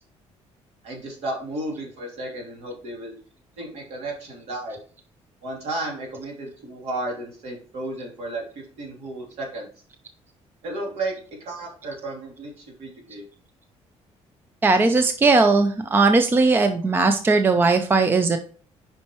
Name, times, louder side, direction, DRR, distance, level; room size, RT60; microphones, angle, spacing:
voice 1, 0.8-3.2 3.6-4.8 5.4-9.7 10.6-11.1 11.4-13.3, right 2 dB, 65° right, 0 dB, 3.0 m, -33 dB
voice 2, 14.6-18.4, right 3 dB, 20° right, 8 dB, 0.5 m, -18 dB
8.4 x 5.6 x 3.0 m, 0.42 s
cardioid pair, 165°, 12 cm